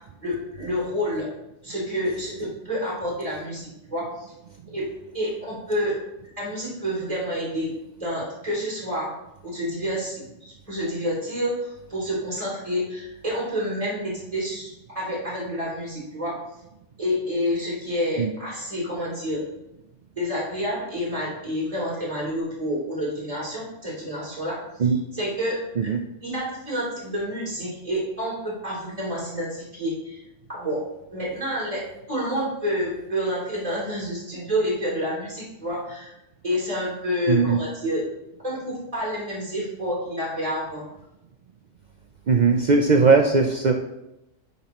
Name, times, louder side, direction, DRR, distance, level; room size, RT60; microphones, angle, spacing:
voice 1, 0.2-1.3 1.6-4.3 4.7-4.9 5.1-6.0 6.4-7.7 8.0-9.1 9.4-16.3 17.0-19.4 20.2-24.6 25.1-25.6 26.2-30.2 30.5-30.8 31.1-31.8 32.1-36.1 36.4-38.0 38.4-40.8, equal, 25° right, -6 dB, 3.1 m, -28 dB
voice 2, 37.3-37.6 42.3-43.7, right 4 dB, 55° right, 4 dB, 0.5 m, -19 dB
9.4 x 5.4 x 3.0 m, 0.88 s
omnidirectional pair, 1.3 m